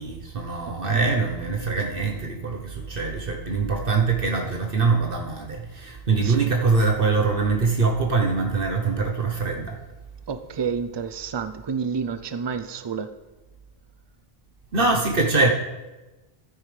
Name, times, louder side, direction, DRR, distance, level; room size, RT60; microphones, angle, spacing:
voice 1, 0.0-9.8 14.7-15.5, right 4 dB, 60° right, 1 dB, 1.2 m, -23 dB
voice 2, 0.7-1.1 6.2-6.5 10.3-13.1, right 6 dB, 35° right, 11 dB, 0.4 m, -30 dB
13.0 x 9.6 x 3.3 m, 1.1 s
omnidirectional pair, 1.1 m